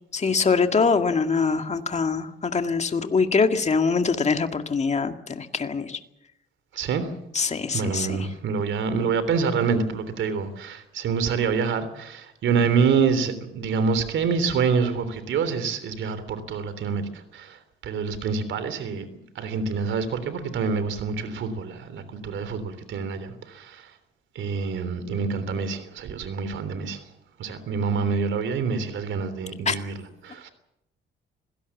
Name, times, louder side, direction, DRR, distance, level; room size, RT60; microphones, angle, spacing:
voice 1, 0.1-6.0 7.3-8.3 29.7-29.8, left 5 dB, 35° left, 6 dB, 2.1 m, -23 dB
voice 2, 6.7-7.1 7.7-17.6 17.8-19.1 19.4-23.9 24.4-27.0 27.4-29.9 30.2-30.5, right 5 dB, 75° right, 12 dB, 3.4 m, -26 dB
25.5 x 17.0 x 7.3 m, 0.81 s
cardioid pair, 90°, 20 cm